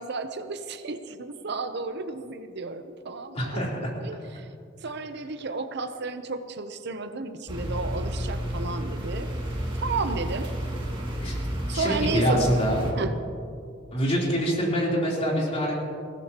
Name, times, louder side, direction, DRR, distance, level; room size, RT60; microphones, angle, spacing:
voice 1, 0.0-3.6 4.0-4.5 4.8-9.3 9.7-10.5 11.4-12.5 13.0-13.1, right 3 dB, 60° right, 9 dB, 0.7 m, -33 dB
voice 2, 3.3-3.8 11.2-11.3 11.7-12.9 13.9-15.8, equal, 35° left, -4 dB, 3.6 m, -25 dB
sound 1, 7.5-12.9, equal, 30° right, 2.5 m, -31 dB
20.5 x 17.0 x 3.0 m, 2.5 s
head